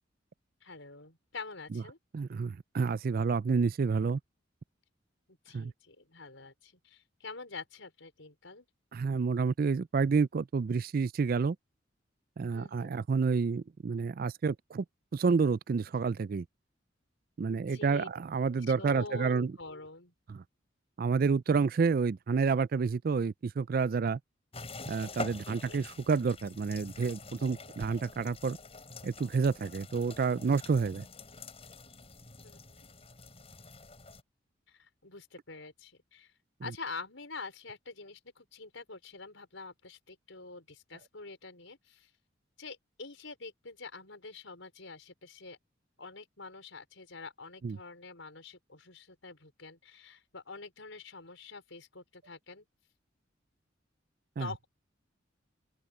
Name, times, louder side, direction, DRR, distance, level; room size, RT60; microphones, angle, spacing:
voice 1, 0.6-2.0 5.3-8.7 12.5-12.9 17.5-18.1 18.5-20.1 25.4-25.8 32.4-32.9 34.7-36.3 36.6-42.1 42.6-45.6 46.0-52.6 54.4-54.7, left 4 dB, 85° left, 4.9 m, -46 dB
voice 2, 2.1-4.2 5.5-5.7 8.9-11.6 12.4-14.8 15.1-16.4 17.4-19.5 20.3-20.4 21.0-24.2 24.9-28.6 29.0-31.0 47.6-47.8 54.4-54.5, right 5 dB, 50° right, 0.4 m, -29 dB
sound 1, 24.5-34.2, left 3 dB, 30° left, 6.9 m, -46 dB
open air
head